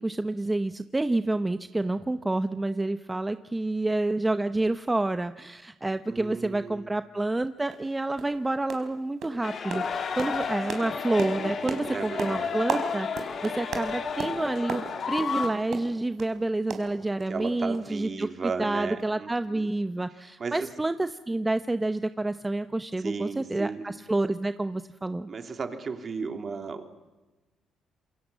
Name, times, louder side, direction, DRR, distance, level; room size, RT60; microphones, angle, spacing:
voice 1, 0.0-18.3 18.6-25.3, right 2 dB, 15° right, 10 dB, 0.8 m, -29 dB
voice 2, 6.1-7.0 11.4-12.6 17.3-19.7 20.4-20.7 23.0-23.8 25.3-27.1, right 5 dB, 40° right, 6 dB, 3.0 m, -35 dB
sound 1, 7.2-7.3 7.7-7.9 8.2-8.4 8.7-9.0 9.2-16.4 16.7-17.5 17.7-17.9 18.2-18.3, right 5 dB, 65° right, 4.3 m, -36 dB
sound 2, 9.4-15.5, left 5 dB, 55° left, 3.1 m, -32 dB
27.5 x 22.5 x 7.4 m, 1.2 s
cardioid pair, 90°, 0 cm